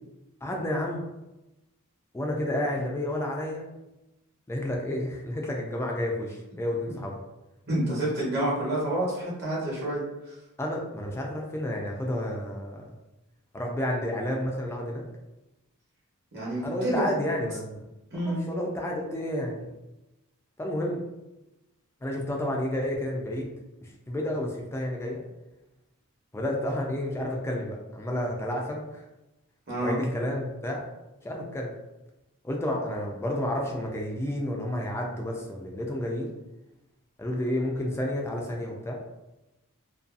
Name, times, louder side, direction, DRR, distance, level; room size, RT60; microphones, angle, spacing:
voice 1, 0.4-1.0 2.1-3.6 4.5-7.1 10.6-12.8 13.5-15.0 16.6-17.8 18.5-19.7 20.6-21.0 22.0-23.5 24.1-25.2 26.3-29.0 29.8-30.9 31.2-31.7 32.4-36.3 37.2-39.0, left 1 dB, 10° left, -1 dB, 0.3 m, -30 dB
voice 2, 7.7-10.4 16.3-17.2 18.1-18.4 29.7-30.0, right 1 dB, 50° right, -6 dB, 1.0 m, -28 dB
2.6 x 2.3 x 2.4 m, 0.98 s
head